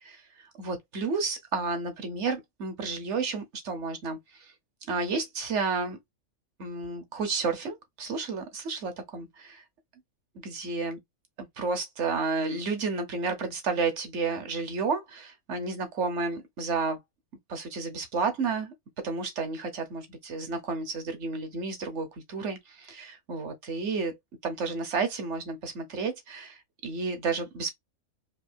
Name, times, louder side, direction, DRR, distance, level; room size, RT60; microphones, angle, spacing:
voice 1, 0.0-4.5 4.9-6.0 6.6-9.6 10.4-11.0 11.6-17.0 17.5-18.7 19.0-24.2 24.4-27.7, right 4 dB, 60° right, 1.3 m, -31 dB
4.7 x 2.5 x 2.6 m
omnidirectional pair, 1.4 m